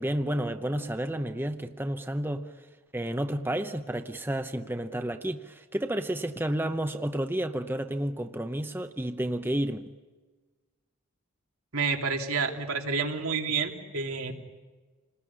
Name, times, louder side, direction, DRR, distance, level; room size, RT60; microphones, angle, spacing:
voice 1, 0.0-2.5 2.9-9.9, right 1 dB, 10° right, 0.8 m, -31 dB
voice 2, 11.7-14.4, right 5 dB, 85° right, 3.1 m, -29 dB
28.5 x 20.0 x 9.9 m
head